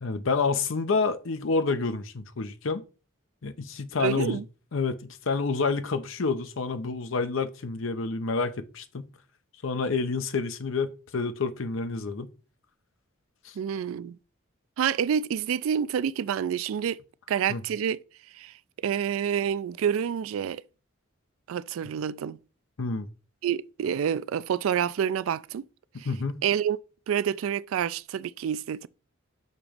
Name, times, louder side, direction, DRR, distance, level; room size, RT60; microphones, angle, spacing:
voice 1, 0.0-2.8 3.4-4.4 4.7-5.0 5.3-9.1 9.6-12.3 13.4-13.5 17.5-17.6 22.8-23.1 25.9-26.4, left 4 dB, 75° left, 0.7 m, -28 dB
voice 2, 4.0-4.4 13.6-14.2 14.8-17.0 17.3-18.0 18.3-18.5 18.8-20.6 21.5-22.4 23.4-25.7 26.0-26.1 26.4-26.8 27.1-28.9, right 8 dB, 85° right, 0.3 m, -28 dB
6.6 x 3.0 x 5.0 m
head